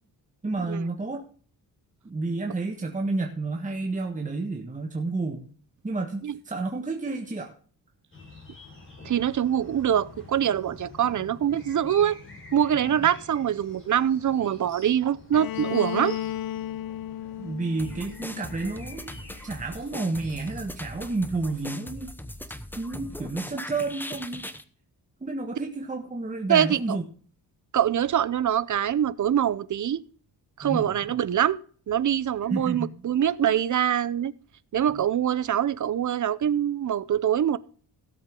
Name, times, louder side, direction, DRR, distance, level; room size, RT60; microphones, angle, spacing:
voice 1, 0.4-1.2 2.0-5.5 5.8-7.5 12.7-13.0 17.4-19.1 19.4-22.1 22.8-24.5 25.2-27.0 30.6-31.2 32.5-33.0 34.9-35.0, right 3 dB, 20° right, 1.6 m, -31 dB
sound 1, 8.1-21.7, left 3 dB, 30° left, 4.8 m, -48 dB
voice 2, 9.0-12.2 12.5-16.2 26.5-27.0 27.7-30.0 30.6-31.6 31.9-34.3 34.7-37.6, right 9 dB, 45° right, 0.7 m, -24 dB
Bowed string instrument, 15.3-19.2, left 12 dB, 60° left, 0.7 m, -34 dB
sound 2, 17.8-24.6, left 1 dB, 5° left, 0.9 m, -40 dB
16.5 x 7.9 x 3.7 m
wide cardioid pair, 135°, 40 cm